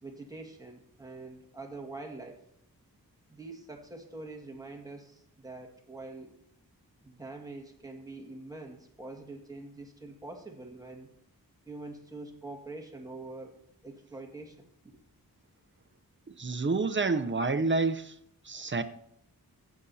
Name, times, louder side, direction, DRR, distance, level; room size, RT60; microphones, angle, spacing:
voice 1, 0.0-2.4 3.3-6.3 7.0-11.1 11.7-15.0, right 2 dB, 10° right, 1.8 m, -45 dB
voice 2, 16.4-18.1 18.4-18.8, right 3 dB, 30° right, 0.7 m, -28 dB
15.5 x 8.7 x 2.8 m
wide cardioid pair, 75°, 37 cm